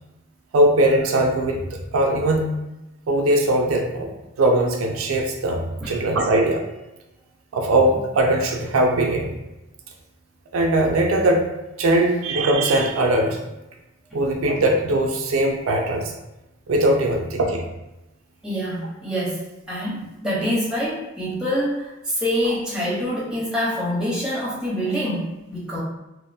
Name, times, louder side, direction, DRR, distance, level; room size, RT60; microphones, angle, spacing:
voice 1, 0.5-1.6 1.9-2.5 3.1-4.1 4.4-5.6 5.9-6.6 7.5-9.3 10.5-11.4 11.8-13.4 14.1-16.1 16.7-17.7, right 1 dB, 80° right, 1 dB, 0.4 m, -20 dB
voice 2, 18.4-25.8, equal, 5° right, -7 dB, 0.7 m, -26 dB
2.5 x 2.0 x 2.6 m, 0.98 s
head